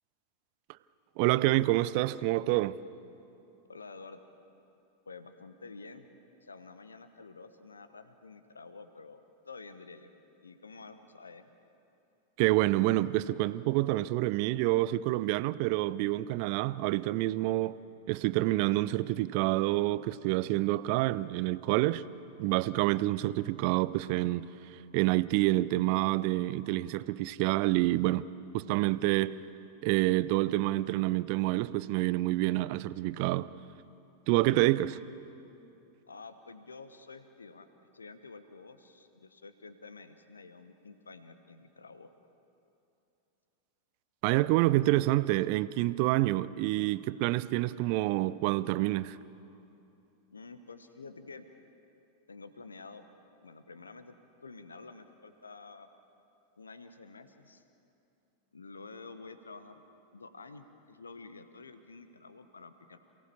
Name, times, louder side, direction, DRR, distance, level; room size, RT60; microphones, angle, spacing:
voice 1, 1.2-2.8 12.4-17.8 18.1-22.0 22.4-24.5 24.9-28.3 28.5-29.4 29.8-33.5 34.3-35.0 44.2-49.2, right 17 dB, 45° right, 0.6 m, -27 dB
voice 2, 3.7-4.2 5.1-6.1 6.4-10.1 10.4-11.5 36.1-37.7 37.9-42.1 50.3-51.4 52.3-53.1 53.4-54.1 54.4-55.9 56.6-57.6 58.5-59.8 60.1-63.0, left 4 dB, 75° left, 1.2 m, -49 dB
28.0 x 18.0 x 7.0 m
figure-of-eight pair, 90°, 0 cm